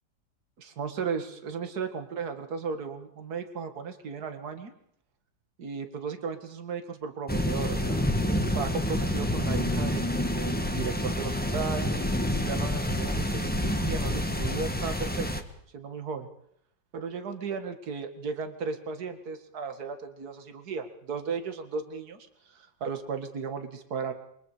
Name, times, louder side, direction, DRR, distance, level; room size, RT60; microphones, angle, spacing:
voice 1, 0.6-4.7 5.6-11.9 12.4-15.3 15.7-16.3 16.9-22.2 22.5-24.1, right 5 dB, 55° right, 8 dB, 2.3 m, -35 dB
sound 1, 7.3-15.4, left 1 dB, 5° left, 1.4 m, -28 dB
27.0 x 23.5 x 5.0 m, 0.70 s
omnidirectional pair, 2.0 m